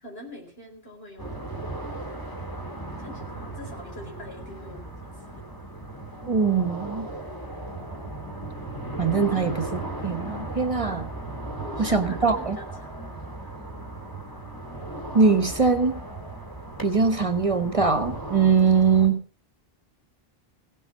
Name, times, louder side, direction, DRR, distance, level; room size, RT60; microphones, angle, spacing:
voice 1, 0.0-1.6 3.0-5.4 11.6-13.5, left 1 dB, 75° left, 0 dB, 5.0 m, -44 dB
sound 1, 1.2-19.1, right 2 dB, 20° left, 2.3 m, -36 dB
voice 2, 6.3-7.1 9.0-11.1 11.8-12.6 15.1-16.0 16.8-19.2, right 5 dB, 35° right, 9 dB, 1.1 m, -22 dB
16.5 x 8.1 x 6.3 m, 0.42 s
omnidirectional pair, 1.0 m